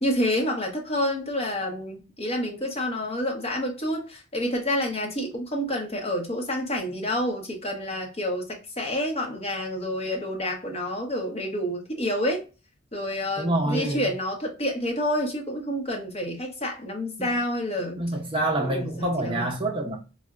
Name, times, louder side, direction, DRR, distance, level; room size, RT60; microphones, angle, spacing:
voice 1, 0.0-12.4 12.9-18.0 18.6-19.5, left 1 dB, 30° left, 0.8 m, -28 dB
voice 2, 13.4-14.0 17.2-17.4 18.0-20.0, right 1 dB, 25° right, 0.5 m, -27 dB
3.9 x 2.1 x 2.3 m
head